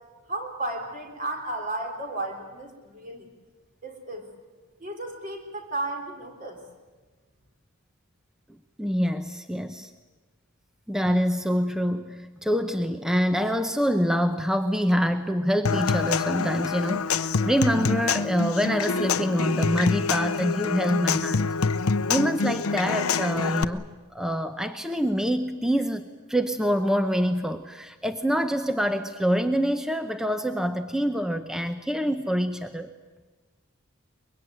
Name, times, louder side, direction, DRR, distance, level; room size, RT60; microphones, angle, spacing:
voice 1, 0.3-3.3 3.8-4.3 4.8-6.6, right 2 dB, 40° right, 3 dB, 3.7 m, -33 dB
voice 2, 8.8-9.9 10.9-21.5 22.1-23.9 24.1-32.9, equal, 5° right, 7 dB, 0.7 m, -26 dB
Human voice / Acoustic guitar / Percussion, 15.6-23.6, left 5 dB, 85° left, 0.8 m, -26 dB
23.5 x 22.0 x 9.2 m, 1.3 s
head